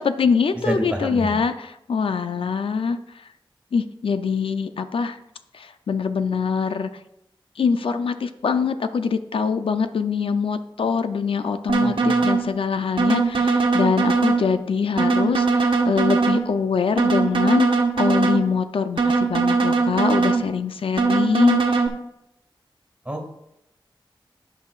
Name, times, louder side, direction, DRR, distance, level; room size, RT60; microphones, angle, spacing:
voice 1, 0.0-3.2 3.7-5.2 5.5-6.9 7.6-21.9, left 5 dB, 80° left, 9 dB, 0.5 m, -24 dB
voice 2, 0.6-1.4 11.8-12.2 23.1-23.3, right 1 dB, 15° right, 2 dB, 2.0 m, -28 dB
sound 1, 11.7-12.4 13.0-14.4 15.0-16.4 17.0-18.4 19.0-20.4 21.0-21.9, right 4 dB, 70° right, 1.3 m, -20 dB
16.5 x 5.6 x 2.4 m, 0.83 s
wide cardioid pair, 80°, 9 cm